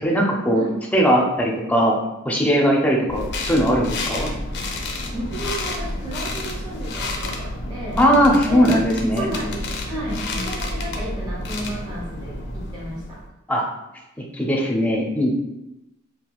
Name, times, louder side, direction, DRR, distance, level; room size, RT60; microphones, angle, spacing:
voice 1, 0.0-0.6 0.9-2.0 2.2-4.3 8.0-9.3 10.1-10.4 13.5-13.7 14.3-15.3, equal, 10° left, -2 dB, 0.6 m, -19 dB
sound 1, 3.1-13.3, left 1 dB, 55° left, 0.5 m, -30 dB
voice 2, 5.1-8.0 8.4-8.6 9.2-13.2, right 1 dB, 20° right, -6 dB, 1.0 m, -33 dB
5.9 x 2.4 x 2.3 m, 0.91 s
head